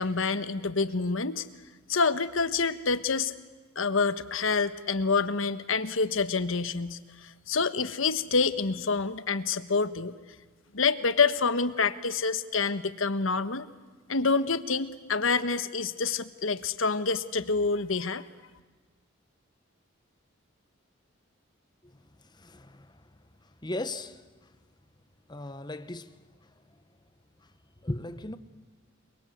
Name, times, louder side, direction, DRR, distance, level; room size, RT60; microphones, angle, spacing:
voice 1, 0.0-1.5 1.9-3.3 3.7-10.1 10.7-13.7 14.1-18.2, left 4 dB, 75° left, 1.3 m, -27 dB
voice 2, 21.8-24.5 25.3-26.8 27.4-27.5 27.8-28.4, left 1 dB, 20° left, 1.1 m, -39 dB
29.5 x 23.5 x 8.1 m
head